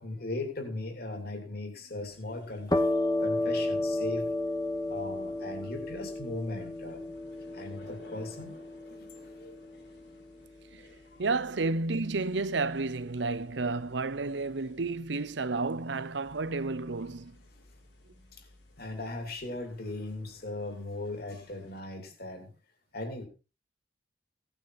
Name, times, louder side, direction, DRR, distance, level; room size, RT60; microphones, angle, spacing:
voice 1, 0.0-2.9 3.2-4.3 4.9-7.0 7.5-8.6 8.9-9.6 11.1-11.2 18.4-18.5 18.8-22.5 22.9-23.3, left 2 dB, 55° left, 3.1 m, -38 dB
sound 1, 1.9-21.8, left 1 dB, 70° left, 5.6 m, -58 dB
sound 2, 2.7-10.2, left 2 dB, 20° left, 1.2 m, -32 dB
voice 2, 11.2-17.4, right 3 dB, 70° right, 0.7 m, -31 dB
17.0 x 9.1 x 4.2 m
head